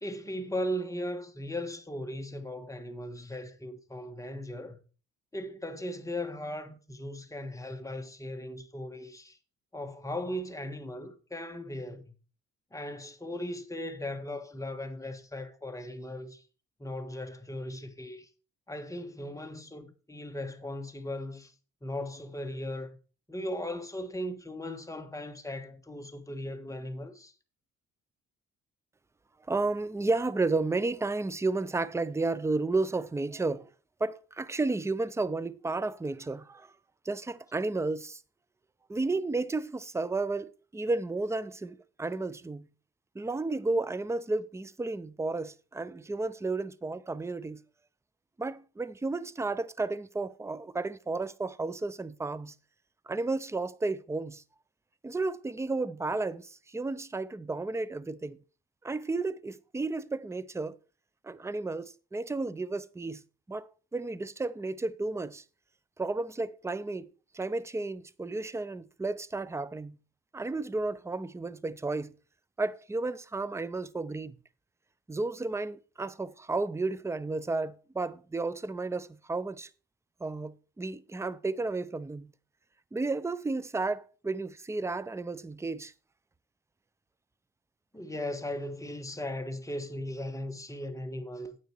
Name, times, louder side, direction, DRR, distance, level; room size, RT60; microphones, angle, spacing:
voice 1, 0.0-4.8 5.3-9.4 9.7-12.1 12.7-16.4 16.8-18.3 18.7-21.5 21.8-23.0 23.3-27.3 87.9-91.6, left 1 dB, 10° left, 1.5 m, -37 dB
voice 2, 29.5-33.7 34.0-36.7 37.0-38.2 38.9-42.6 43.1-47.6 48.4-52.5 53.1-54.4 55.0-58.4 58.8-60.8 61.2-63.2 63.5-65.4 66.0-67.1 67.3-70.0 70.3-72.1 72.6-74.3 75.1-79.7 80.2-82.3 82.9-85.9, right 3 dB, 10° right, 0.5 m, -32 dB
9.2 x 8.0 x 4.6 m
cardioid pair, 90°, 30 cm